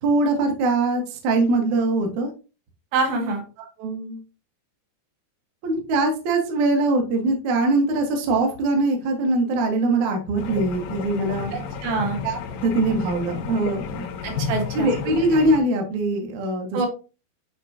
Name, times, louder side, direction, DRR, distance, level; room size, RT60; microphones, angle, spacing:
voice 1, 0.0-2.3 3.6-4.2 5.6-11.5 12.2-14.1 14.7-16.9, right 2 dB, 60° right, 2 dB, 2.1 m, -22 dB
voice 2, 2.9-3.4 11.5-12.2 14.2-14.9 16.7-16.9, right 3 dB, 75° right, 2 dB, 3.4 m, -25 dB
sound 1, 10.4-15.6, left 6 dB, 80° left, 2.0 m, -32 dB
9.1 x 4.2 x 2.8 m, 0.32 s
omnidirectional pair, 5.1 m